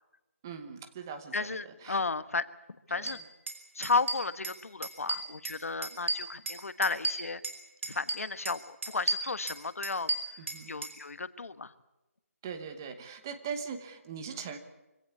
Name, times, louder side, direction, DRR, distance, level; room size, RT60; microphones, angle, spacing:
voice 1, 0.4-2.0 2.9-3.2 10.4-10.8 12.4-14.6, right 6 dB, 15° right, 8 dB, 1.0 m, -41 dB
voice 2, 1.3-2.4 2.9-3.2 3.7-7.4 7.9-10.1 10.7-11.7, left 4 dB, 65° left, 14 dB, 1.3 m, -33 dB
sound 1, 3.1-3.2 3.5-3.6 3.8-4.6 4.8-5.6 5.8-7.6 7.8-8.6 8.8-10.9, right 2 dB, 55° right, 5.1 m, -33 dB
25.0 x 17.0 x 8.4 m, 1.0 s
hypercardioid pair, 175°, 8 cm